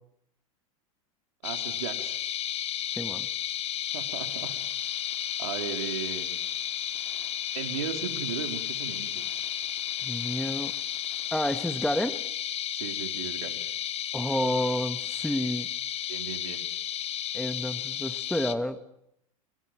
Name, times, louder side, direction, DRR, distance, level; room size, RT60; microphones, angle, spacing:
sound 1, 1.4-18.5, left 11 dB, 35° left, 1.4 m, -33 dB
voice 1, 1.4-2.2 3.9-4.5 5.4-6.4 7.5-9.5 12.7-13.6 16.1-16.6, right 9 dB, 80° right, 6 dB, 4.0 m, -36 dB
voice 2, 2.9-3.3 10.0-10.7 11.3-12.2 14.1-15.7 17.3-18.8, left 1 dB, 5° left, 11 dB, 1.5 m, -30 dB
sound 2, 4.2-12.0, left 8 dB, 85° left, 5.3 m, -57 dB
29.5 x 24.5 x 7.7 m, 0.79 s
hypercardioid pair, 110°, 18 cm